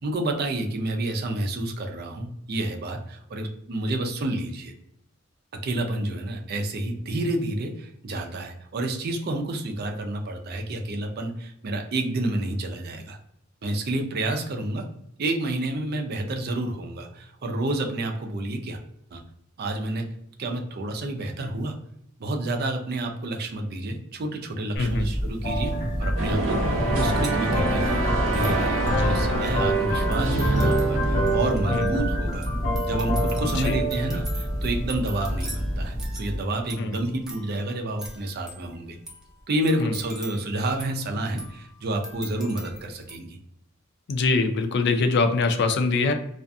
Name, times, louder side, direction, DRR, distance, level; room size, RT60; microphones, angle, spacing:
voice 1, 0.0-4.7 5.5-13.2 13.6-14.9 15.2-18.8 19.1-19.2 19.6-20.1 20.4-21.8 22.2-28.8 29.1-32.5 32.9-39.0 39.5-43.4, right 1 dB, 55° right, 3 dB, 0.5 m, -29 dB
voice 2, 24.8-25.1 28.9-29.2 31.7-31.8 33.6-33.8 36.8-37.0 39.8-39.9 44.1-46.1, left 3 dB, 60° left, 8 dB, 0.4 m, -23 dB
sound 1, 24.8-36.4, equal, 35° left, 1.1 m, -26 dB
sound 2, 25.7-25.8 26.5-26.6 26.8-43.2, right 1 dB, 5° right, 0.5 m, -44 dB
sound 3, 26.2-31.6, right 2 dB, 85° right, 0.7 m, -26 dB
2.6 x 2.4 x 2.2 m, 0.76 s
head